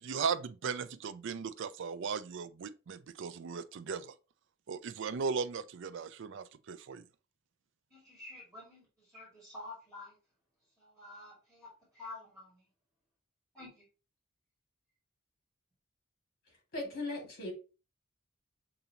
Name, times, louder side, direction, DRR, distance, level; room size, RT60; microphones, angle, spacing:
voice 1, 0.0-4.1 4.7-7.1, right 6 dB, 60° right, 0.4 m, -37 dB
voice 2, 7.9-10.1 10.8-11.7 11.9-12.6 13.5-13.8, left 2 dB, ahead, 2.1 m, -49 dB
voice 3, 16.7-17.5, left 2 dB, 50° left, 2.1 m, -38 dB
6.7 x 2.6 x 2.9 m
head